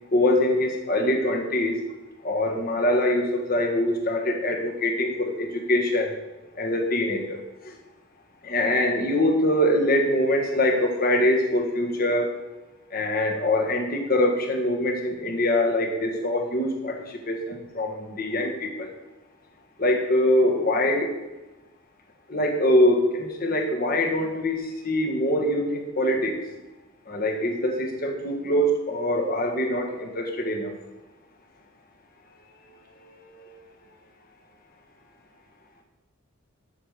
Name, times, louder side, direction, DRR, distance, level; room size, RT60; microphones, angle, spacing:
voice 1, 0.1-1.8 2.2-6.2 6.6-7.4 8.4-12.4 12.9-18.9 19.8-21.1 22.3-26.4 27.1-30.7 33.4-33.5, left 1 dB, 40° left, 3 dB, 1.5 m, -24 dB
8.4 x 7.1 x 6.6 m, 1.1 s
head